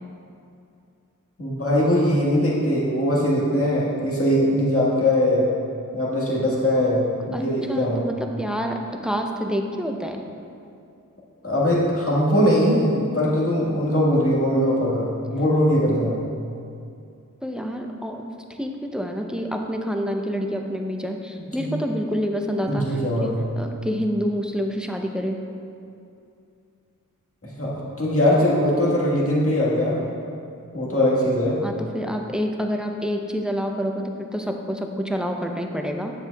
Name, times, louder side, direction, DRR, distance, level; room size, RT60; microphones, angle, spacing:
voice 1, 1.4-5.5 5.9-8.0 11.4-16.2 21.6-21.7 22.7-23.5 27.4-30.1 30.7-31.6, equal, 45° left, -6 dB, 1.5 m, -21 dB
voice 2, 7.7-10.2 17.4-18.3 18.6-25.4 31.6-36.1, equal, ahead, 2 dB, 0.5 m, -28 dB
7.2 x 6.9 x 2.3 m, 2.5 s
wide cardioid pair, 45°, 32 cm